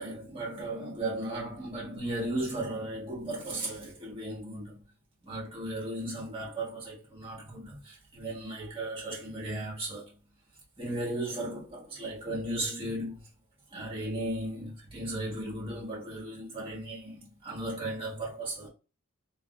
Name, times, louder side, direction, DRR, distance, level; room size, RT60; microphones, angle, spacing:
voice 1, 0.0-4.8 5.2-10.1 10.8-13.2 13.7-18.7, right 1 dB, 25° right, 1.2 m, -36 dB
3.4 x 2.6 x 2.4 m
head